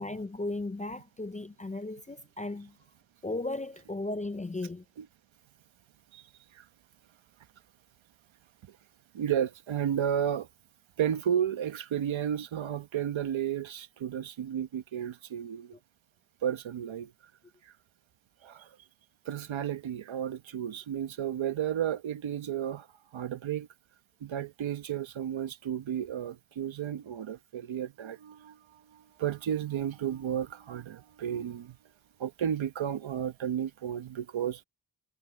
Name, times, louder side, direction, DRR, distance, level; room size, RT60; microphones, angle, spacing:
voice 1, 0.0-2.8 3.2-4.8, left 2 dB, 15° left, 0.4 m, -36 dB
voice 2, 9.1-10.5 11.0-15.8 16.4-17.1 17.6-17.7 18.4-18.8 19.2-22.9 23.1-23.7 24.2-31.8 32.2-34.6, right 9 dB, 80° right, 1.2 m, -33 dB
wide cardioid pair, 135°, 46 cm